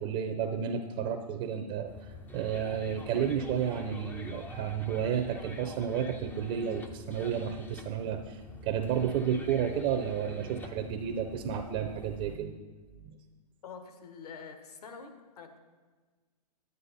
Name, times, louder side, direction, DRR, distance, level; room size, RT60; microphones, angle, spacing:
voice 1, 0.0-12.6 13.0-13.2, right 8 dB, 35° right, 6 dB, 0.6 m, -32 dB
sound 1, 1.9-12.4, left 3 dB, 10° left, 0.5 m, -47 dB
voice 2, 13.6-15.6, left 5 dB, 65° left, 6 dB, 1.4 m, -46 dB
9.6 x 9.6 x 4.1 m, 1.4 s
hypercardioid pair, 125°, 21 cm